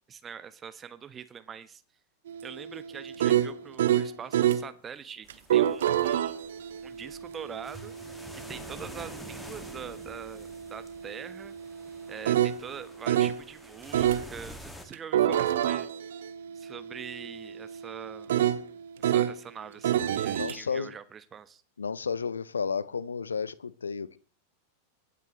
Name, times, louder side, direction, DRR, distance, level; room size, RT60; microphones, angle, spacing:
voice 1, 0.1-1.8 2.4-6.3 6.8-7.9 8.3-11.5 12.1-15.9 16.5-18.3 19.0-21.6, right 7 dB, 20° right, 12 dB, 1.2 m, -43 dB
sound 1, 2.3-4.7 5.3-13.4 13.9-14.3 14.9-19.4 19.8-20.5, right 11 dB, 60° right, 1.0 m, -29 dB
sound 2, 5.2-14.9, equal, 5° left, 2.1 m, -48 dB
voice 2, 20.4-20.9 21.8-24.2, left 5 dB, 75° left, 20 dB, 0.7 m, -32 dB
24.0 x 9.6 x 3.2 m, 0.39 s
figure-of-eight pair, 90°, 0 cm